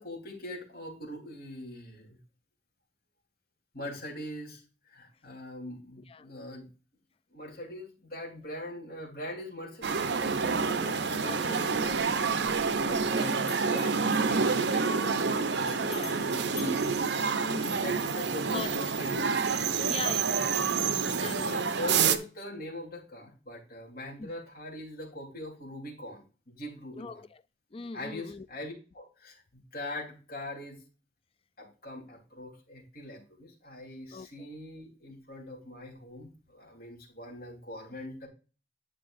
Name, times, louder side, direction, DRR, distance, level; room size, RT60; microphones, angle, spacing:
voice 1, 0.0-2.2 3.7-4.6 4.9-6.7 7.3-12.1 12.8-16.9 17.8-19.4 19.7-20.0 20.3-20.6 21.1-27.2 27.9-30.8 31.6-38.3, left 1 dB, 50° left, 3.7 m, -42 dB
sound 1, 9.8-22.2, right 5 dB, 65° right, 0.7 m, -28 dB
voice 2, 10.7-12.0 15.8-16.2 17.4-18.0 18.5-18.9 19.8-21.6 24.2-24.3 27.0-27.3 27.7-28.5 34.1-34.3, left 4 dB, 30° left, 0.4 m, -41 dB
Bell, 11.9-13.1 13.4-17.9, left 6 dB, 80° left, 2.3 m, -49 dB
10.5 x 6.5 x 2.6 m
head